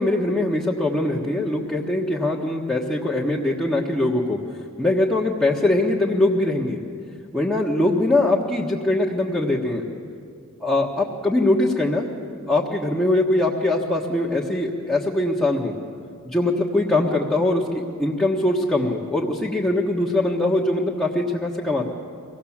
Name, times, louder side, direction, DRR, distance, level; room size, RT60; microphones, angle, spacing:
voice 1, 0.0-4.4 4.8-6.8 7.3-9.8 10.6-12.1 12.5-15.7 16.2-21.8, left 2 dB, 5° left, -5 dB, 1.4 m, -22 dB
24.5 x 17.0 x 7.3 m, 2.4 s
head